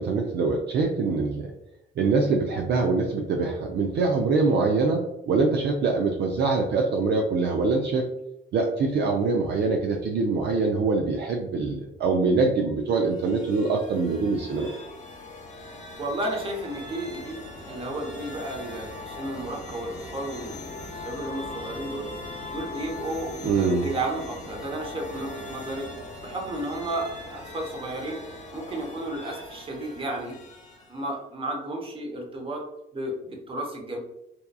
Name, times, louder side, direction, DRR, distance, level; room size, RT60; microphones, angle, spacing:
voice 1, 0.0-1.5 2.0-8.0 8.5-14.7 23.4-23.9, right 4 dB, 60° right, 1 dB, 0.4 m, -24 dB
sound 1, 12.9-31.1, left 2 dB, 35° left, 0.8 m, -40 dB
voice 2, 16.0-20.7 21.0-22.1 22.5-25.9 26.2-28.2 28.5-30.4 30.9-32.6 32.9-34.0, right 1 dB, 25° right, 0 dB, 0.8 m, -33 dB
2.8 x 2.3 x 2.2 m, 0.84 s
cardioid pair, 90°, 20 cm